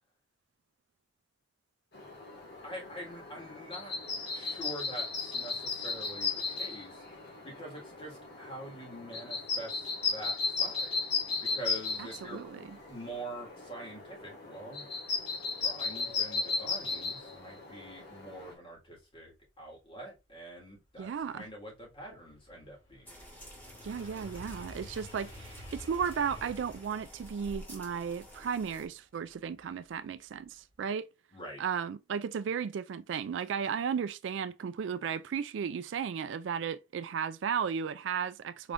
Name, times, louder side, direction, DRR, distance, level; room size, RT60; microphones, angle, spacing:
sound 1, 1.9-18.5, left 4 dB, 60° left, 1.9 m, -36 dB
voice 1, 2.6-3.9 4.3-7.0 7.4-10.9 11.4-12.4 12.9-14.8 15.6-21.1 21.3-23.1 31.3-31.6, right 1 dB, 30° left, 2.0 m, -45 dB
voice 2, 12.2-12.8 21.0-21.5 23.8-31.1 31.6-38.7, right 7 dB, 70° right, 0.3 m, -34 dB
sound 2, 20.3-20.4 20.8-29.9 30.3-30.7, left 1 dB, 80° left, 2.0 m, -51 dB
sound 3, 23.1-28.9, equal, 10° left, 1.7 m, -50 dB
4.8 x 3.4 x 2.5 m
head